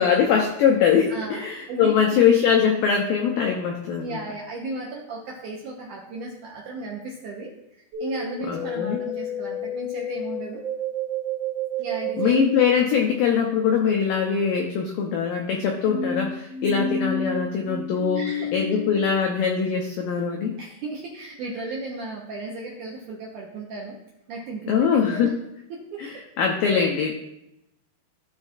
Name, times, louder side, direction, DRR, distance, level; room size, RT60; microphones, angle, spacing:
voice 1, 0.0-4.2 8.5-9.0 12.2-18.2 18.5-20.5 24.7-25.3 26.0-27.1, left 7 dB, 85° left, 2 dB, 2.0 m, -22 dB
voice 2, 1.1-1.4 1.7-2.1 4.0-10.6 11.8-12.4 16.7-17.0 18.2-18.5 20.6-24.0 24.3-24.7 25.1-25.3 25.7-26.2, right 2 dB, 75° right, -2 dB, 1.9 m, -35 dB
sound 1, 7.9-12.5 15.8-19.1, equal, 45° right, 2.6 m, -30 dB
16.0 x 5.4 x 2.4 m, 0.87 s
omnidirectional pair, 4.9 m